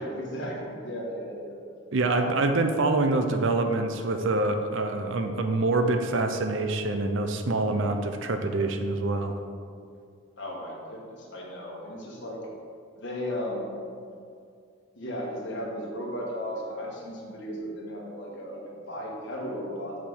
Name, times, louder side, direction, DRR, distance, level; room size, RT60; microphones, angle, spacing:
voice 1, 0.0-1.5 2.1-2.4 10.4-12.4 12.9-13.8 14.9-20.0, equal, 55° left, -2 dB, 1.6 m, -35 dB
voice 2, 1.9-9.3, right 2 dB, 60° right, 6 dB, 0.6 m, -26 dB
7.3 x 5.0 x 5.6 m, 2.3 s
head